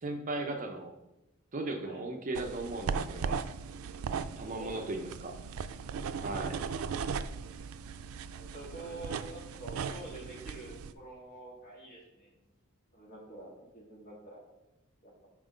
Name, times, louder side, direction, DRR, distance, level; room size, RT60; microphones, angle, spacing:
voice 1, 0.0-0.9 1.5-3.4 4.4-5.3 6.2-6.6, right 2 dB, 40° right, 4 dB, 0.6 m, -37 dB
sound 1, 2.3-10.9, right 5 dB, 85° right, 0.4 m, -38 dB
voice 2, 4.4-5.3 8.3-12.4 12.9-14.4 15.0-15.3, right 2 dB, 45° left, -4 dB, 2.2 m, -48 dB
5.9 x 4.4 x 5.0 m, 0.94 s
head